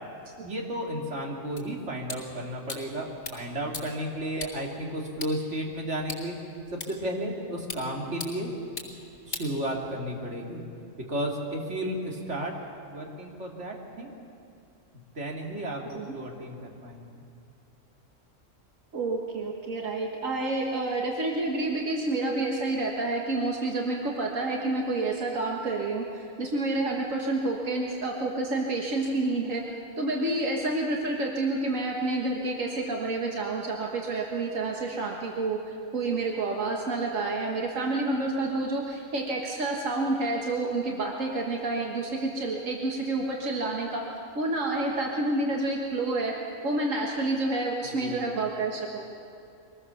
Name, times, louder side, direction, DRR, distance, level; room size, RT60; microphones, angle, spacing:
voice 1, 0.4-6.4 6.7-8.5 9.2-10.6 11.0-12.5 12.9-14.2 15.1-17.2 47.8-48.3, right 1 dB, 65° right, -1 dB, 2.8 m, -33 dB
sound 1, 1.6-10.2, left 3 dB, 55° left, 4.6 m, -43 dB
voice 2, 18.9-29.6 30.0-46.3 46.6-49.0, right 2 dB, 85° right, -1 dB, 1.9 m, -29 dB
24.0 x 19.0 x 7.0 m, 2.5 s
omnidirectional pair, 1.3 m